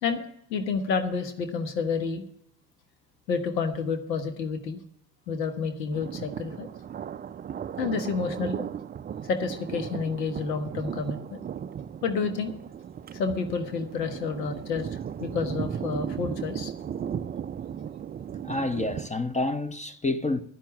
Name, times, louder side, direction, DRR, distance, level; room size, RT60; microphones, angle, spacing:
voice 1, 0.0-2.2 3.3-4.8 5.3-6.7 7.8-8.7 9.2-11.4 12.0-12.5 13.1-16.7, left 5 dB, 85° left, 1.4 m, -30 dB
Thunder, 5.9-19.1, right 8 dB, 20° right, 0.4 m, -36 dB
voice 2, 18.4-20.4, left 2 dB, 15° left, 0.9 m, -28 dB
11.0 x 10.0 x 7.2 m
hypercardioid pair, 55°, 48 cm